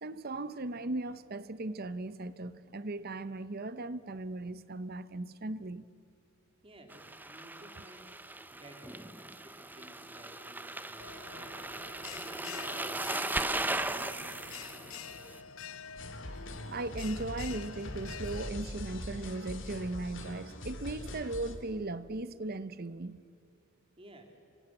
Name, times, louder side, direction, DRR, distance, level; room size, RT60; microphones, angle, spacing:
voice 1, 0.0-5.9 16.7-23.2, right 2 dB, 50° right, 0.9 m, -38 dB
voice 2, 6.6-8.2 8.5-15.4 24.0-24.2, right 1 dB, 25° right, 3.1 m, -56 dB
sound 1, 6.9-15.4, right 2 dB, 10° right, 0.8 m, -38 dB
Bell, 11.0-18.5, left 7 dB, 85° left, 0.8 m, -47 dB
sound 2, 16.0-21.5, left 1 dB, 65° left, 2.8 m, -42 dB
28.0 x 25.0 x 7.8 m
head